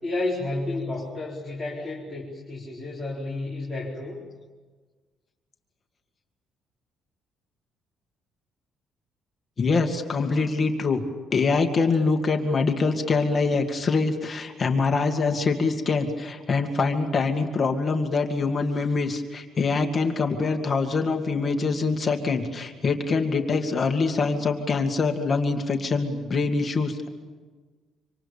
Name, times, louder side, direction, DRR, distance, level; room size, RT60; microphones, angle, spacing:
voice 1, 0.0-4.2, left 2 dB, 5° right, -4 dB, 4.4 m, -31 dB
voice 2, 9.6-11.0 11.3-27.1, left 4 dB, 25° left, 4 dB, 2.2 m, -24 dB
26.5 x 26.0 x 7.2 m, 1.4 s
cardioid pair, 160°, 0 cm